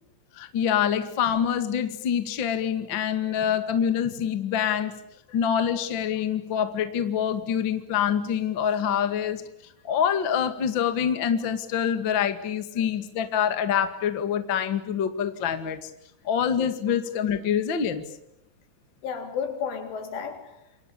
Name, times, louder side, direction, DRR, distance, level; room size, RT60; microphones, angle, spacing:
voice 1, 0.3-5.0 5.3-9.4 9.8-15.9 16.2-18.0, left 8 dB, 45° left, 1.6 m, -26 dB
voice 2, 19.0-20.9, left 6 dB, 90° left, 6.2 m, -33 dB
28.5 x 24.0 x 8.6 m
omnidirectional pair, 5.4 m